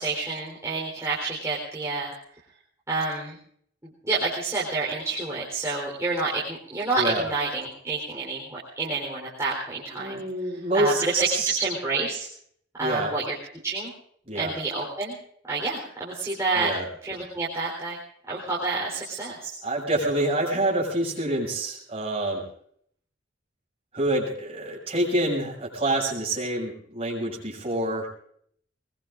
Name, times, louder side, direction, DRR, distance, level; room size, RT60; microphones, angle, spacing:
voice 1, 0.0-2.1 2.9-3.4 4.0-10.2 10.7-12.3 12.8-13.4 13.6-13.9 14.3-15.2 15.5-16.7 17.0-18.0 18.3-19.5, right 3 dB, 15° right, -6 dB, 3.9 m, -28 dB
voice 2, 10.0-11.6 12.8-13.1 14.3-14.5 16.6-16.9 19.6-22.4 23.9-28.1, right 1 dB, 30° right, -3 dB, 7.2 m, -27 dB
23.0 x 21.5 x 2.6 m, 0.64 s
head